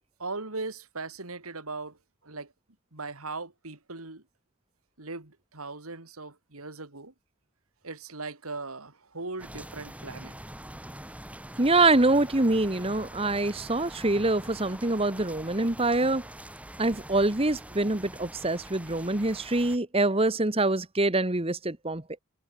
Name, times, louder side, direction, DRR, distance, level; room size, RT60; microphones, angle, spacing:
voice 1, 0.2-2.0 2.2-2.5 2.9-4.2 5.0-7.1 7.8-10.4, right 3 dB, 90° right, 3.2 m, -39 dB
sound 1, 9.4-19.8, right 1 dB, 5° right, 3.9 m, -44 dB
voice 2, 11.6-16.2 16.8-22.0, right 2 dB, 25° right, 1.4 m, -25 dB
head